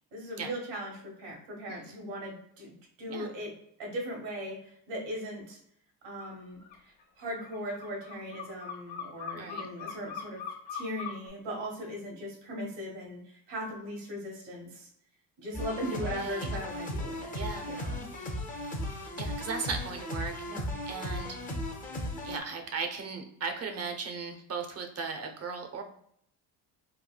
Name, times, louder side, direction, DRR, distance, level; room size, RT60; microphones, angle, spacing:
voice 1, 0.1-2.7 3.0-3.5 3.8-5.6 6.0-10.4 10.7-14.9 15.4-17.4 17.6-18.0 20.5-20.7, equal, 80° right, -1 dB, 1.2 m, -39 dB
voice 2, 1.7-2.0 3.1-3.3 9.4-9.7 15.9-16.5 17.3-17.7 19.2-20.3 20.9-21.4 22.2-25.8, right 5 dB, 35° right, 4 dB, 0.5 m, -37 dB
sound 1, 6.2-6.3 6.6-11.3, left 7 dB, 80° left, 0.9 m, -41 dB
sound 2, 15.5-22.4, left 1 dB, 20° left, 0.5 m, -36 dB
3.2 x 2.2 x 2.2 m, 0.69 s
supercardioid pair, 80°, 45 cm